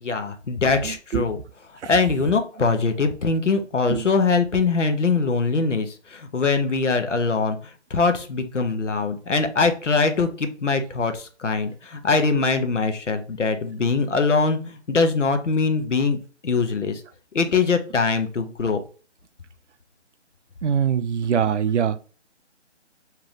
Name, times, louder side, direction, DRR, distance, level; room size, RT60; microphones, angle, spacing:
voice 1, 0.0-1.4 1.8-16.2 16.4-17.0 17.3-18.8, left 4 dB, 85° left, 0.9 m, -22 dB
voice 2, 0.8-1.3 3.9-4.1 20.6-22.0, right 8 dB, 75° right, 0.5 m, -23 dB
3.3 x 2.9 x 3.7 m
figure-of-eight pair, 165°, 36 cm